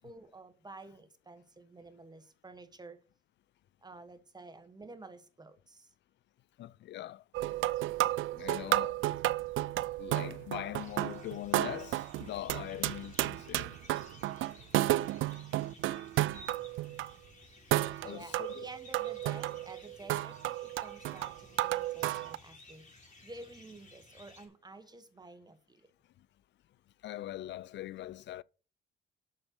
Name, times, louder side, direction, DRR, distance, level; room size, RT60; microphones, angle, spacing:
voice 1, 0.0-3.0 3.8-5.9 18.0-25.9, right 2 dB, 20° right, 1.2 m, -51 dB
voice 2, 6.6-7.2 8.3-9.0 10.0-13.8 18.0-18.7 27.0-28.4, left 14 dB, 65° left, 0.4 m, -42 dB
sound 1, 7.3-17.1 17.7-22.4, right 15 dB, 80° right, 0.4 m, -32 dB
sound 2, 10.8-24.5, left 2 dB, 40° left, 5.1 m, -56 dB
7.3 x 6.5 x 6.4 m
cardioid pair, 90°, 20 cm